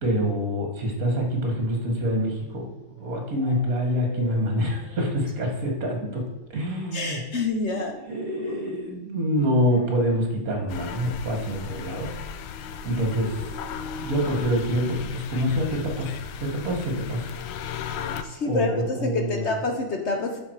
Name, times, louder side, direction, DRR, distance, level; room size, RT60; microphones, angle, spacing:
voice 1, 0.0-2.7 3.0-6.3 6.5-7.2 7.7-12.2 12.8-13.4 14.0-17.4 18.4-19.6, equal, 45° right, 2 dB, 2.1 m, -26 dB
sound 1, 2.3-5.3 5.6-5.7 6.0-6.1 6.3-6.5 7.7-7.8 9.5-10.4, left 2 dB, 30° left, 2.3 m, -46 dB
voice 2, 6.9-7.9 18.2-20.4, left 3 dB, 50° left, 4 dB, 0.9 m, -27 dB
sound 2, 10.7-18.2, left 7 dB, 90° left, 1.5 m, -35 dB
8.6 x 6.6 x 4.7 m, 1.1 s
omnidirectional pair, 2.2 m